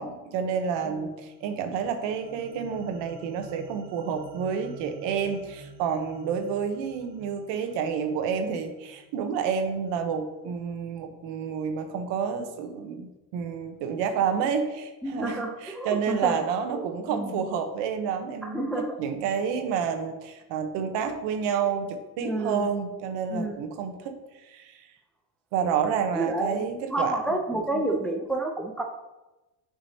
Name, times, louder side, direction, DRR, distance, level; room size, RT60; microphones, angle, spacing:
voice 1, 0.0-18.7 19.0-24.9 25.5-28.0, right 6 dB, 70° right, 7 dB, 1.0 m, -29 dB
sound 1, 1.2-9.7, right 5 dB, 45° right, 0.9 m, -49 dB
voice 2, 15.0-16.4 16.7-17.4 18.4-19.0 22.2-22.7 23.3-23.6 26.1-26.6 26.9-28.8, right 1 dB, ahead, 2 dB, 0.5 m, -30 dB
7.0 x 5.0 x 2.8 m, 1.1 s
cardioid pair, 110°, 44 cm